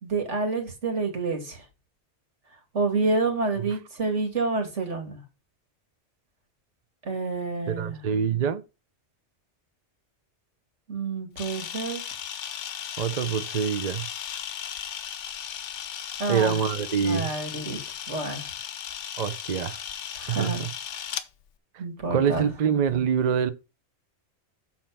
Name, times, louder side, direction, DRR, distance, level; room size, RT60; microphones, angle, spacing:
voice 1, 0.0-1.6 2.7-5.2 7.0-8.0 10.9-12.0 16.2-16.6 17.0-17.8 18.1-18.5 20.2-20.6 21.8-22.5, right 3 dB, 80° right, 2.3 m, -28 dB
voice 2, 7.7-8.6 13.0-14.1 16.3-17.3 19.2-19.8 20.3-20.7 22.1-23.5, right 7 dB, 45° right, 0.6 m, -25 dB
Camera, 11.4-21.3, left 9 dB, 85° left, 1.1 m, -36 dB
7.4 x 4.4 x 5.8 m
omnidirectional pair, 1.2 m